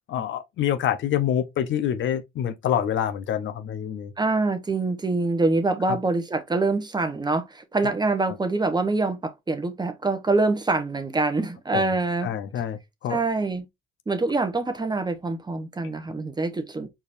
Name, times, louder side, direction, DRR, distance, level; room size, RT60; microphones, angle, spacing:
voice 1, 0.1-4.1 5.8-6.0 8.3-8.4 11.7-11.9 12.2-13.2, left 10 dB, 70° left, 0.8 m, -26 dB
voice 2, 4.2-12.3 13.1-13.7 14.1-16.9, right 3 dB, 20° right, 0.9 m, -25 dB
4.6 x 3.5 x 2.6 m
cardioid pair, 90°, 20 cm